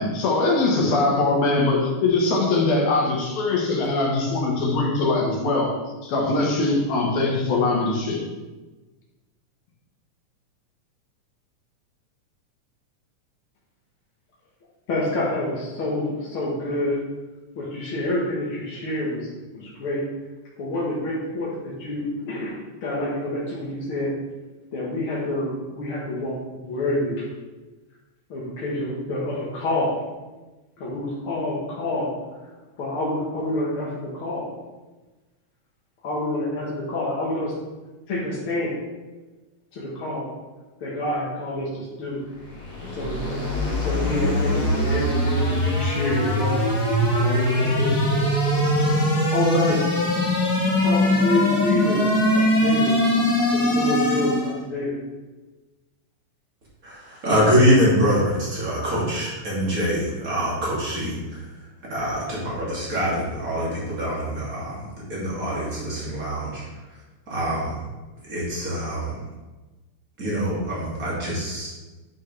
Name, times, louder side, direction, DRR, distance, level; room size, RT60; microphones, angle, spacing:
voice 1, 0.0-5.7 6.0-8.2, left 3 dB, 80° left, -2 dB, 2.9 m, -22 dB
voice 2, 14.9-17.1 17.6-20.1 20.6-24.1 24.7-27.3 28.3-30.0 30.8-32.1 32.8-34.5 36.0-37.5 38.1-38.8 39.7-40.3 40.8-42.2 42.8-46.6 47.2-49.9 50.6-53.0 53.5-55.0, left 1 dB, 50° left, -6 dB, 2.0 m, -28 dB
sound 1, 42.4-54.6, left 1 dB, 35° left, 2.6 m, -22 dB
voice 3, 56.8-61.2 61.9-66.6 67.3-67.7 68.3-69.2 70.2-71.7, equal, 30° right, -6 dB, 2.8 m, -24 dB
10.0 x 6.3 x 3.3 m, 1.2 s
omnidirectional pair, 3.4 m